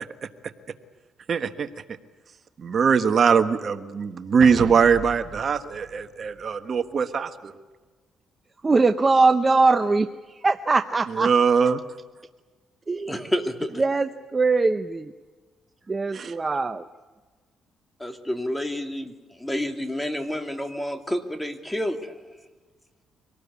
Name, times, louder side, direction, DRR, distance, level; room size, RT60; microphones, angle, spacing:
voice 1, 1.3-1.7 2.6-7.5 11.1-11.8 16.1-16.3, right 6 dB, 50° right, 9 dB, 1.3 m, -21 dB
sound 1, 4.4-6.9, right 8 dB, 70° right, 1.5 m, -37 dB
voice 2, 8.6-11.3 12.9-13.1 13.8-15.1 15.9-16.9, right 3 dB, 25° right, 9 dB, 0.8 m, -21 dB
voice 3, 13.1-13.7 18.0-22.1, equal, 10° left, 6 dB, 2.5 m, -29 dB
25.0 x 18.5 x 8.4 m, 1.3 s
cardioid pair, 90°, 0 cm